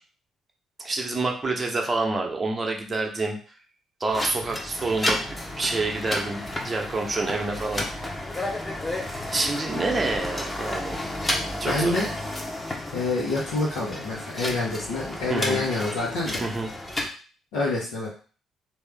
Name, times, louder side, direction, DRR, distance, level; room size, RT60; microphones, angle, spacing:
voice 1, 0.8-3.4 4.0-7.9 9.3-11.0 11.6-11.9 15.3-15.6 16.4-16.7, right 3 dB, 30° right, 2 dB, 0.9 m, -27 dB
sound 1, 4.1-17.1, left 1 dB, 20° left, 1.0 m, -32 dB
voice 2, 11.6-12.1 12.9-16.4 17.5-18.1, left 2 dB, 70° left, -8 dB, 1.1 m, -27 dB
3.5 x 2.7 x 3.5 m, 0.38 s
figure-of-eight pair, 45°, 0 cm